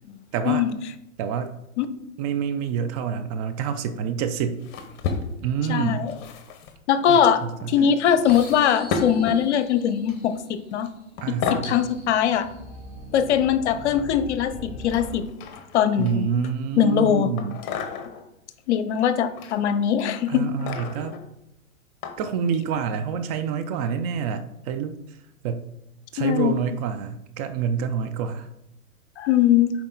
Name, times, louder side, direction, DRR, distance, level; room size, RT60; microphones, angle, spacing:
voice 1, 0.3-0.7 1.2-1.5 2.2-4.6 5.4-6.1 7.1-7.7 11.2-11.9 16.0-17.6 20.3-21.2 22.2-25.0 25.4-25.6 26.1-28.5, right 7 dB, 30° right, 9 dB, 0.5 m, -27 dB
sound 1, 4.6-5.6 6.1-6.7 7.5-7.7 8.3-9.5 10.1-10.4 10.7-10.9 11.2-11.7 13.0-13.8 14.9-16.4 17.4-18.2 19.0-19.6 19.9-21.2 22.0-22.2 22.7-22.8, left 5 dB, 40° left, 1.1 m, -33 dB
voice 2, 5.7-6.2 6.9-10.9 11.3-12.5 13.1-15.2 15.7-16.3 16.8-17.3 18.7-20.5 26.2-26.6 29.2-29.7, left 9 dB, 55° left, 12 dB, 0.8 m, -21 dB
sound 2, 8.2-15.1, equal, 15° left, 2.2 m, -42 dB
7.2 x 4.7 x 4.0 m, 0.82 s
hypercardioid pair, 115°, 40 cm